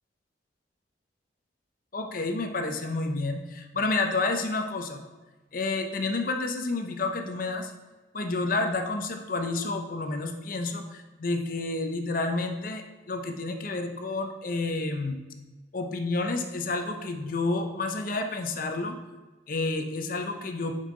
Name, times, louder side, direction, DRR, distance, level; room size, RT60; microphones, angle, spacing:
voice 1, 1.9-5.0 5.5-7.7 8.1-15.2 15.7-19.0 19.5-20.7, left 3 dB, 50° left, 5 dB, 0.7 m, -30 dB
6.6 x 5.4 x 3.8 m, 1.2 s
head